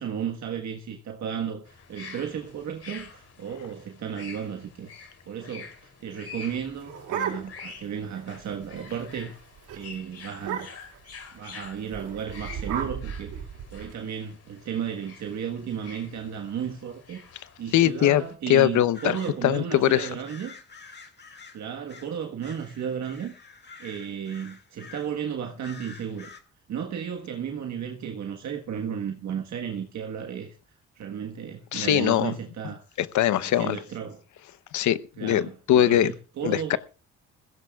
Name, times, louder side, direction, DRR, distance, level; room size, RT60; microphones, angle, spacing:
voice 1, 0.0-9.3 9.7-10.7 11.3-13.3 13.7-20.5 21.5-23.3 23.8-26.3 26.7-30.5 30.9-32.8 33.4-34.2 35.2-36.8, right 8 dB, 65° right, 1.4 m, -34 dB
sound 1, 1.7-18.3, left 5 dB, 55° left, 3.2 m, -47 dB
sound 2, 6.5-7.8 8.2-8.3 8.5-8.8 9.2-9.4 9.7-9.8 10.4-11.0 11.9-13.9, right 8 dB, 90° right, 3.8 m, -34 dB
voice 2, 17.7-18.2 18.5-19.2 19.4-20.1 31.7-32.3 33.0-33.8 34.7-35.4 35.7-36.1 36.4-36.8, left 12 dB, 75° left, 0.9 m, -21 dB
sound 3, 18.9-19.4 20.0-22.1 22.4-25.2 25.6-26.4, left 4 dB, 35° left, 2.3 m, -48 dB
21.0 x 16.0 x 2.4 m
cardioid pair, 90°, 30 cm